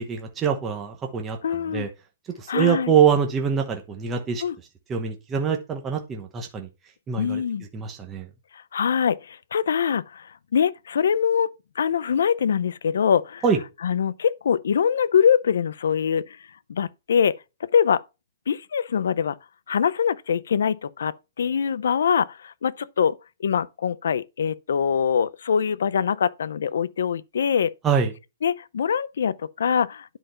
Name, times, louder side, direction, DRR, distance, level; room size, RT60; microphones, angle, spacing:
voice 1, 0.0-1.4 1.7-1.9 2.4-4.4 4.9-6.7 7.1-7.4 7.7-8.3 13.4-13.6 27.8-28.1, right 7 dB, 15° right, 1.0 m, -24 dB
voice 2, 1.4-1.9 2.5-2.9 4.4-4.6 7.2-7.6 8.5-13.4 13.8-18.0 18.5-19.4 19.7-27.7 28.4-30.2, left 7 dB, 80° left, 0.7 m, -24 dB
10.5 x 5.0 x 5.7 m
hypercardioid pair, 170°, 0 cm